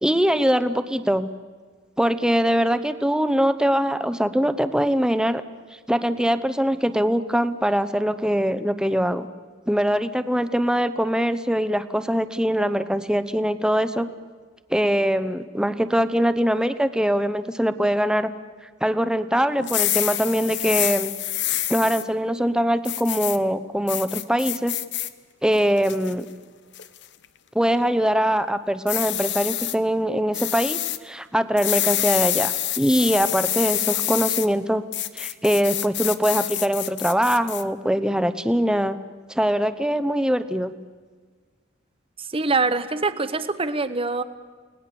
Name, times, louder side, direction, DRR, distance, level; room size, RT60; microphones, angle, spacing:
voice 1, 0.0-1.3 2.0-5.4 5.9-9.3 9.7-14.1 14.7-18.3 18.8-21.1 21.7-24.8 25.4-26.3 27.5-34.8 35.1-39.0 39.3-40.7, equal, 5° right, 11 dB, 0.8 m, -22 dB
sound 1, 19.6-22.0 22.8-23.4 23.9-25.1 25.6-26.1 26.7-27.0 28.9-29.7 30.3-31.0 31.6-34.5 34.9-37.6, left 13 dB, 60° left, 0.9 m, -26 dB
voice 2, 42.2-44.2, right 3 dB, 30° right, 11 dB, 1.0 m, -24 dB
29.5 x 19.0 x 7.0 m, 1.5 s
head